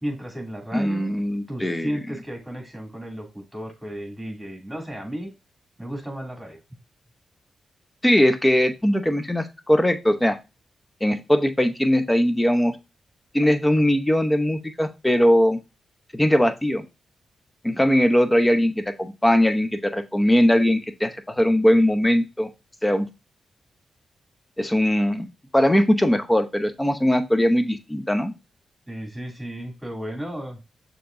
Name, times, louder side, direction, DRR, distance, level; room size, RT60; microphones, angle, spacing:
voice 1, 0.0-1.0 1.5-5.3 5.8-6.6 28.9-30.6, equal, 10° right, 0 dB, 2.7 m, -34 dB
voice 2, 0.7-2.0 8.0-10.4 11.0-12.8 13.3-15.6 16.1-16.8 17.6-22.5 22.8-23.1 24.6-25.3 25.5-28.3, equal, 15° left, 9 dB, 0.8 m, -20 dB
6.4 x 3.0 x 2.6 m, 0.26 s
supercardioid pair, 50°, 0 cm